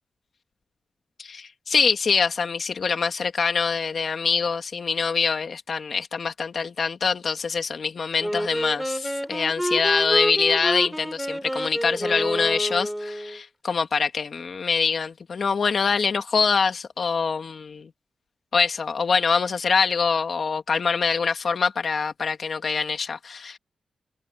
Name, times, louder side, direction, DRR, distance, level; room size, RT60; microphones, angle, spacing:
voice 1, 1.2-17.9 18.5-23.6, left 5 dB, 60° left, 2.3 m, -24 dB
Wind instrument woodwind instrument, 8.2-13.4, equal, 5° right, 7.2 m, -28 dB
wide cardioid pair, 105°, 0 cm